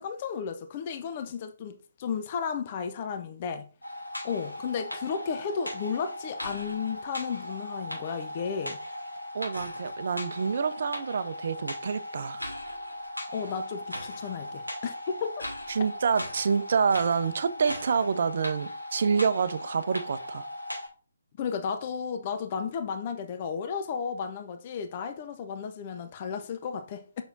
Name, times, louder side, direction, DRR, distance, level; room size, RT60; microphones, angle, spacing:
voice 1, 0.0-3.7 4.2-8.8 13.3-15.4 21.4-27.2, left 6 dB, 30° left, 0.7 m, -33 dB
sound 1, 3.8-20.9, left 1 dB, 90° left, 2.7 m, -38 dB
voice 2, 9.3-12.4 15.7-20.5, right 6 dB, 50° right, 0.6 m, -27 dB
6.9 x 6.1 x 2.6 m
figure-of-eight pair, 140°, 0 cm